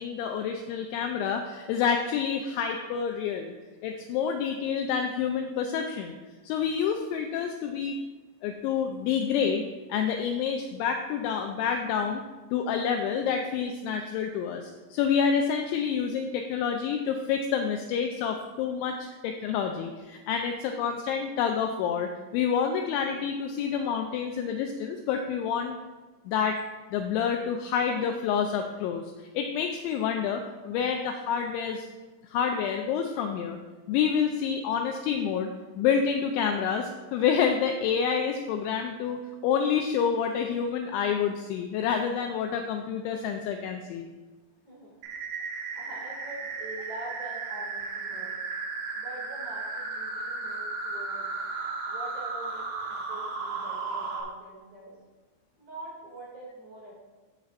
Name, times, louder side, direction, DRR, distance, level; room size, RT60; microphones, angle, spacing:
voice 1, 0.0-3.5 3.8-6.1 6.4-8.0 8.4-9.6 9.9-12.2 12.5-25.8 26.3-26.6 26.9-31.9 32.2-33.6 33.9-35.5 35.8-44.1, left 7 dB, 90° left, 4 dB, 2.6 m, -28 dB
sound 1, 45.0-54.2, right 4 dB, 75° right, 3.6 m, -35 dB
voice 2, 45.7-48.4 48.9-51.3 51.9-54.9 55.6-56.9, right 2 dB, 45° right, -6 dB, 2.8 m, -44 dB
14.0 x 7.5 x 2.4 m, 1.3 s
omnidirectional pair, 5.9 m